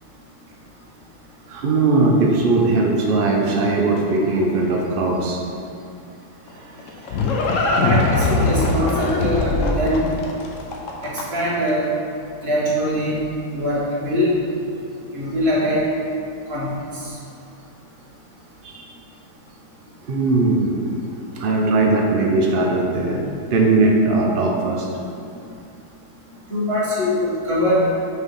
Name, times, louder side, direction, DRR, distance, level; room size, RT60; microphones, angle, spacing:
voice 1, 1.5-5.4 6.6-7.8 18.6-18.8 20.1-20.9 21.4-24.9, right 3 dB, 65° right, 0 dB, 0.5 m, -20 dB
Livestock farm animals working animals, 6.5-11.5, left 2 dB, 60° left, 1.0 m, -21 dB
voice 2, 7.8-10.0 11.0-11.9 12.4-13.2 13.5-14.3 15.1-15.9 16.5-17.1 26.5-27.8, equal, 40° right, -7 dB, 1.8 m, -22 dB
6.2 x 3.9 x 5.5 m, 2.4 s
omnidirectional pair, 1.7 m